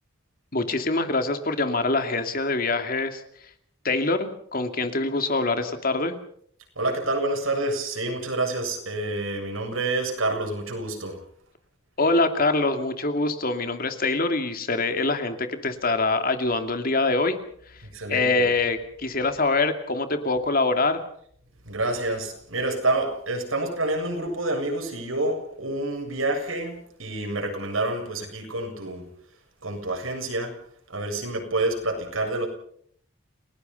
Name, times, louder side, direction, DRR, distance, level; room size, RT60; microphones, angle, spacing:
voice 1, 0.5-3.2 3.8-6.2 12.0-17.4 18.1-21.0, left 3 dB, 45° left, 7 dB, 2.6 m, -24 dB
voice 2, 6.8-11.2 17.8-18.3 21.7-29.1 29.6-30.6 30.9-32.5, right 2 dB, 85° right, 3 dB, 7.5 m, -28 dB
30.0 x 18.5 x 5.6 m, 0.64 s
head